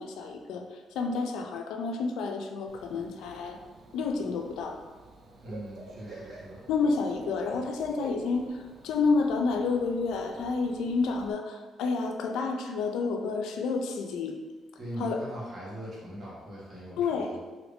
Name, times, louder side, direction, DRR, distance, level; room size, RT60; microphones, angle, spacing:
voice 1, 0.0-3.6 3.9-4.8 6.7-14.4 15.0-15.2 17.0-17.4, left 4 dB, 85° left, 4 dB, 0.3 m, -30 dB
Bird / Cricket, 2.7-11.3, right 2 dB, 65° right, 0.4 m, -48 dB
voice 2, 5.4-6.6 14.8-17.4, equal, 45° right, -7 dB, 1.4 m, -40 dB
2.8 x 2.5 x 3.4 m, 1.3 s
cardioid pair, 90°, 0 cm